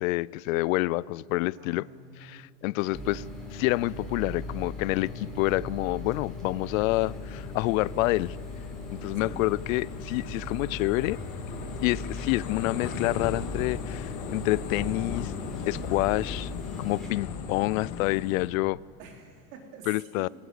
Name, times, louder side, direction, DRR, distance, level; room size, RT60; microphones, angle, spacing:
voice 1, 0.0-1.8 2.2-3.2 3.5-8.4 8.9-11.2 11.8-15.3 15.7-16.5 16.8-18.8 19.9-20.3, left 20 dB, 85° left, 0.5 m, -28 dB
voice 2, 1.6-2.5 2.8-3.2 9.0-9.4 19.0-19.9, right 4 dB, 85° right, 4.6 m, -47 dB
sound 1, 2.9-17.1, left 1 dB, ahead, 4.8 m, -39 dB
sound 2, 6.9-18.5, left 6 dB, 45° left, 2.2 m, -38 dB
20.5 x 18.5 x 8.2 m
supercardioid pair, 145°, 40 cm